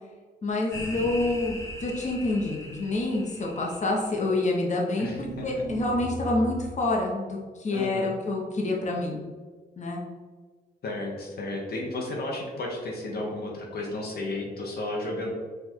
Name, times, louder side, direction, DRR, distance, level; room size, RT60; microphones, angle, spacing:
voice 1, 0.4-9.2 9.8-10.0, left 2 dB, 45° left, -2 dB, 0.9 m, -27 dB
sound 1, 0.7-4.6, left 1 dB, 15° left, 1.0 m, -40 dB
voice 2, 5.0-5.4 7.7-8.1 10.8-15.3, left 2 dB, 65° left, -1 dB, 0.9 m, -33 dB
sound 2, 5.1-6.9, right 1 dB, 50° right, 0.7 m, -37 dB
4.7 x 2.5 x 4.3 m, 1.4 s
cardioid pair, 90°, 17 cm